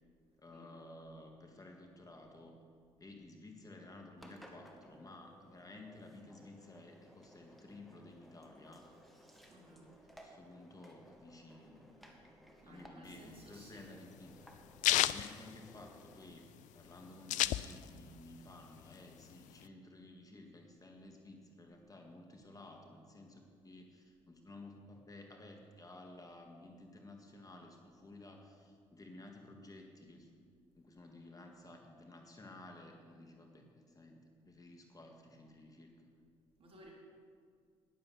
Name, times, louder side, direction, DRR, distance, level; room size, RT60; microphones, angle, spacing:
voice 1, 0.4-2.6 3.0-8.9 10.2-12.2 12.6-14.3 14.9-30.3 30.7-36.0, left 2 dB, 25° left, 2 dB, 1.9 m, -54 dB
Engine, 4.2-16.3, equal, ahead, 1.9 m, -60 dB
voice 2, 9.5-9.9 12.6-13.9 36.6-36.9, right 1 dB, 45° right, -2 dB, 3.9 m, -58 dB
sound 1, 13.1-16.3 16.6-16.7 16.9-18.1 18.5-19.6, left 15 dB, 65° left, 0.4 m, -33 dB
11.5 x 10.5 x 6.3 m, 2.1 s
hypercardioid pair, 55°, 14 cm